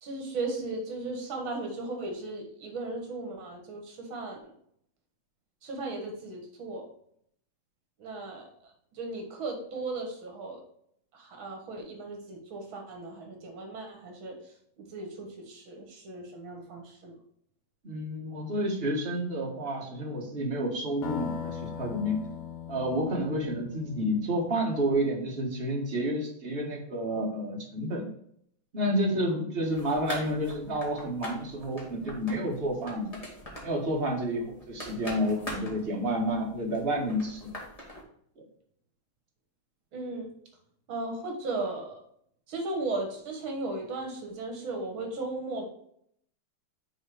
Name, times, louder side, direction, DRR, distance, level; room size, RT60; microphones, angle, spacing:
voice 1, 0.0-4.4 5.6-6.9 8.0-10.6 11.1-17.2 39.9-40.3 40.9-42.0 42.5-45.6, right 2 dB, 70° right, 2 dB, 2.1 m, -36 dB
voice 2, 17.8-22.2 22.7-28.1 28.7-33.2 33.6-37.5 38.4-38.5, equal, 30° right, 0 dB, 1.4 m, -30 dB
sound 1, 21.0-24.8, left 8 dB, 65° left, 1.2 m, -39 dB
sound 2, 29.6-38.0, equal, 20° left, 1.6 m, -43 dB
6.5 x 3.9 x 4.8 m, 0.69 s
omnidirectional pair, 2.3 m